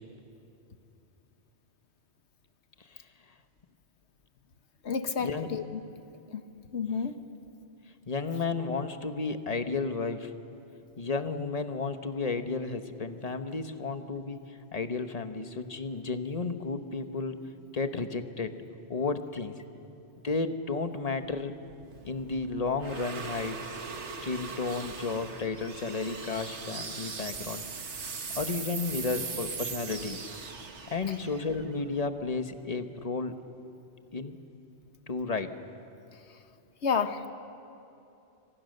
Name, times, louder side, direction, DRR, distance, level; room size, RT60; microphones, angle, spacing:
voice 1, 4.8-5.8 6.3-6.4 6.7-7.2 36.8-37.3, left 6 dB, 75° left, 9 dB, 1.5 m, -30 dB
voice 2, 8.1-10.3 11.0-17.5 17.7-18.5 18.9-19.6 20.2-21.5 22.0-23.8 24.2-27.6 28.3-30.2 30.9-33.4 34.1-34.4 35.1-35.5, left 4 dB, 35° left, 8 dB, 1.2 m, -32 dB
sound 1, 21.3-32.5, right 5 dB, 80° right, 1.7 m, -40 dB
28.5 x 25.0 x 6.6 m, 2.8 s
omnidirectional pair, 1.2 m